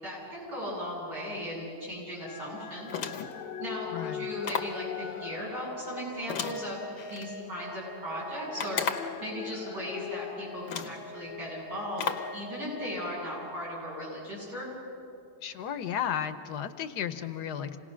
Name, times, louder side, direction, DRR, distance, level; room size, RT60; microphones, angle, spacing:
voice 1, 0.0-2.9 3.6-6.8 7.1-8.8 9.2-14.7, equal, 75° right, -6 dB, 8.8 m, -37 dB
sound 1, 2.2-14.2 14.8-14.9, left 6 dB, 50° left, 0.8 m, -42 dB
sound 2, 2.9-3.4 4.4-4.8 6.3-7.3 8.6-9.2 10.1-10.2 10.7-11.0 12.0-12.4, left 7 dB, 90° left, 1.7 m, -34 dB
voice 2, 3.9-4.3 15.4-17.8, left 9 dB, 70° left, 10 dB, 1.3 m, -34 dB
27.5 x 18.0 x 6.2 m, 2.5 s
omnidirectional pair, 1.9 m